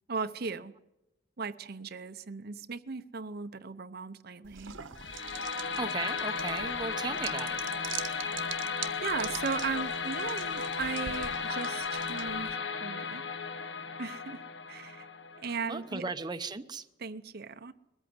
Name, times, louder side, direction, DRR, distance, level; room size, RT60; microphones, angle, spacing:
voice 1, 0.1-0.7 1.4-4.8 9.0-13.2 14.0-14.4 14.7-15.1 15.4-16.0 17.0-17.7, right 5 dB, 55° right, 11 dB, 0.7 m, -37 dB
sound 1, 4.4-12.5, right 9 dB, 85° right, 1.3 m, -44 dB
sound 2, 5.0-16.0, left 5 dB, 65° left, 1.6 m, -35 dB
voice 2, 5.8-7.6 15.7-16.9, right 3 dB, 20° right, 8 dB, 0.8 m, -36 dB
22.0 x 14.5 x 9.6 m, 0.95 s
head